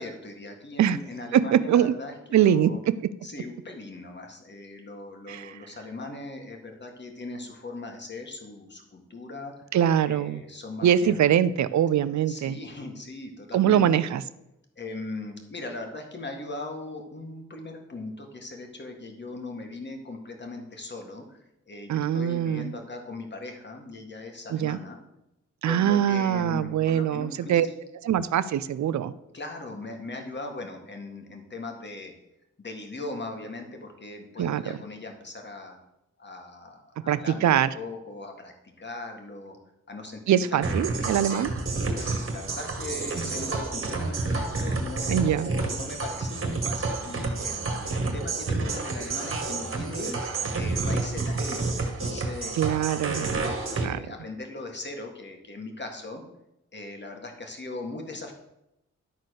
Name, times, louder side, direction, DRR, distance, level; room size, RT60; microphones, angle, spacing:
voice 1, 0.0-2.8 3.2-9.5 10.1-11.3 12.3-13.8 14.8-25.0 25.6-27.7 29.3-32.1 32.6-35.8 36.2-39.6 39.9-40.2 40.5-40.6 40.9-41.2 41.9-50.1 50.5-52.5 53.3-56.2 56.7-58.3, left 2 dB, 35° left, 3 dB, 1.9 m, -39 dB
voice 2, 1.3-2.0 2.3-3.0 5.3-5.6 9.7-10.4 10.8-12.6 13.5-14.2 21.9-22.7 24.5-24.8 25.6-27.7 28.0-29.1 34.4-34.6 37.1-37.7 40.3-41.5 45.1-45.5 52.5-53.4 53.8-54.0, right 10 dB, 75° right, 15 dB, 0.5 m, -23 dB
sound 1, 40.6-53.9, right 3 dB, 45° right, 1.7 m, -29 dB
11.5 x 4.2 x 6.5 m, 0.87 s
cardioid pair, 80°, 29 cm